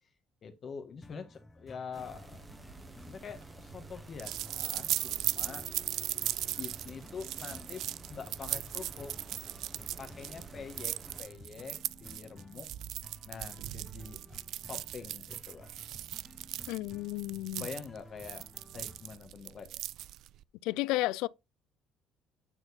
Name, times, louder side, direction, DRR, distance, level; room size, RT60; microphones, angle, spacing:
voice 1, 0.4-2.4 3.1-9.4 10.0-12.7 13.2-15.7 17.6-18.4 18.7-19.8, left 6 dB, 35° left, 1.4 m, -45 dB
Soothing guitar, 1.0-19.2, left 1 dB, 10° left, 0.9 m, -55 dB
sound 1, 1.9-11.2, right 2 dB, 15° right, 1.2 m, -51 dB
sound 2, 3.0-20.4, right 13 dB, 60° right, 0.3 m, -38 dB
voice 2, 16.7-17.7 20.6-21.3, left 18 dB, 85° left, 0.4 m, -32 dB
8.9 x 4.5 x 4.2 m
cardioid pair, 140°, 0 cm